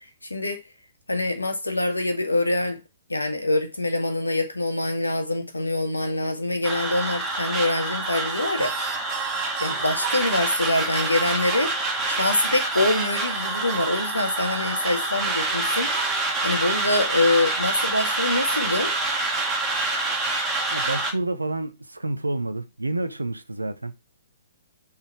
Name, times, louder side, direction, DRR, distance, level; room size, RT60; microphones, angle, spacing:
voice 1, 1.1-2.8 3.1-8.9 9.6-11.7 12.1-18.9, left 2 dB, 80° left, 1.9 m, -25 dB
sound 1, 6.6-21.1, right 2 dB, 10° right, 2.5 m, -27 dB
sound 2, 8.3-11.8 12.2-16.2, right 12 dB, 30° right, 1.1 m, -37 dB
voice 2, 20.7-24.0, right 2 dB, 80° right, 1.0 m, -29 dB
6.8 x 5.5 x 4.5 m
figure-of-eight pair, 120°, 0 cm